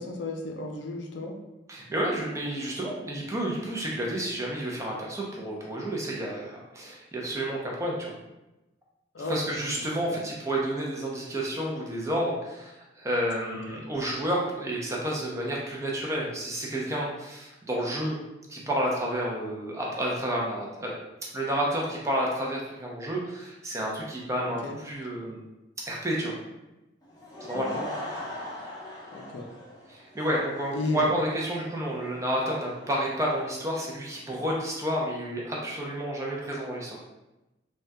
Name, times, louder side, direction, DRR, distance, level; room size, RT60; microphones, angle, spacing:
voice 1, 0.0-1.4 9.1-9.6 10.1-10.2 13.7-13.8 24.4-24.8 27.5-27.9 29.1-29.5 30.7-31.1, left 2 dB, 70° left, 2 dB, 0.4 m, -34 dB
voice 2, 1.7-8.1 9.3-18.2 18.5-21.0 21.3-25.5 25.9-26.3 27.4-27.7 29.9-37.0, right 1 dB, 15° right, -3 dB, 0.5 m, -30 dB
Laughter / Crowd, 27.0-33.9, left 1 dB, 20° left, 0.6 m, -41 dB
3.4 x 2.2 x 2.6 m, 0.99 s
head